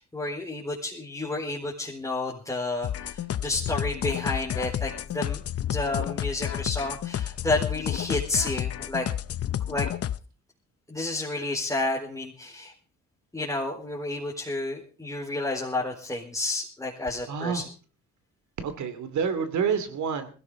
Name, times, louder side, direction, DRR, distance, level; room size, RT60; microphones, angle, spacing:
voice 1, 0.0-9.0 9.7-9.9 10.9-12.7 13.3-17.6, left 2 dB, 10° left, -4 dB, 4.4 m, -31 dB
sound 1, 2.8-10.2, left 11 dB, 50° left, 0.7 m, -31 dB
voice 2, 17.3-17.6 18.6-20.3, right 6 dB, 70° right, 10 dB, 2.8 m, -28 dB
20.5 x 16.0 x 3.9 m, 0.39 s
cardioid pair, 90°, 30 cm